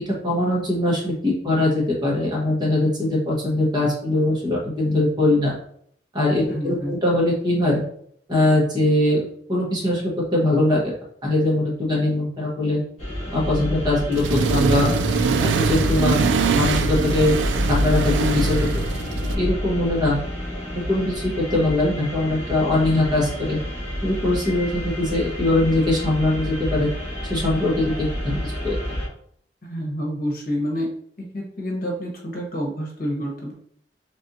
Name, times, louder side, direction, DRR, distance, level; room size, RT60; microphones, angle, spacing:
voice 1, 0.1-5.5 6.1-7.8 8.3-9.2 9.5-10.8 11.2-12.8 13.3-14.9 15.4-16.2 16.5-17.3 17.7-18.6 19.3-20.2 20.9-23.6 24.0-26.9 27.3-28.7, left 1 dB, 25° right, -4 dB, 1.4 m, -21 dB
voice 2, 6.5-7.0 29.6-30.9 31.2-33.5, equal, 50° left, -1 dB, 1.2 m, -28 dB
sound 1, 13.0-29.1, left 1 dB, 35° left, 1.6 m, -28 dB
Accelerating revving vroom, 14.1-19.3, right 5 dB, 80° right, 0.3 m, -23 dB
4.2 x 3.4 x 2.7 m, 0.64 s
head